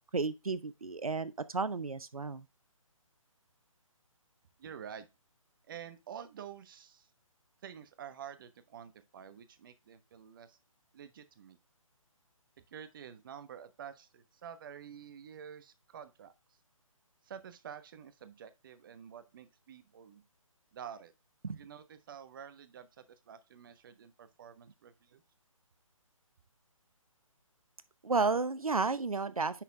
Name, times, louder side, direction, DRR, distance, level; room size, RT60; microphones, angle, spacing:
voice 1, 0.1-2.4 21.4-21.6 28.0-29.6, right 4 dB, 85° right, 0.7 m, -32 dB
voice 2, 4.6-5.1 5.7-7.1 7.6-10.6 10.9-11.6 12.7-16.3 17.2-20.2 20.7-21.1 21.5-25.2, right 8 dB, 40° right, 1.0 m, -49 dB
10.0 x 4.2 x 3.4 m
figure-of-eight pair, 145°, 18 cm